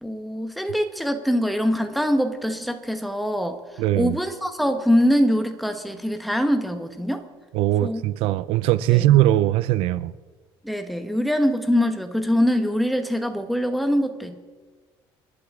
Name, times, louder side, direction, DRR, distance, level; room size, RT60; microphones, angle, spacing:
voice 1, 0.0-3.6 3.9-7.2 7.8-8.0 8.9-9.0 10.6-14.4, equal, ahead, 1.1 m, -23 dB
voice 2, 3.8-4.2 7.5-10.1, right 14 dB, 85° right, 0.5 m, -20 dB
29.0 x 11.5 x 3.7 m
cardioid pair, 155°, 10 cm